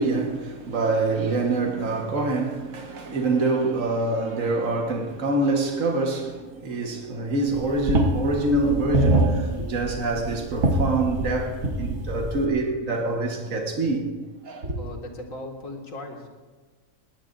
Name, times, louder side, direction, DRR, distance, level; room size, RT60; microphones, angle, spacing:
voice 1, 0.0-14.1 14.4-14.9, right 2 dB, 75° right, 1.9 m, -25 dB
sound 1, 7.5-12.5, right 2 dB, 60° right, 1.5 m, -25 dB
voice 2, 14.8-16.3, left 2 dB, 80° left, 2.4 m, -37 dB
20.0 x 18.5 x 2.6 m
omnidirectional pair, 1.4 m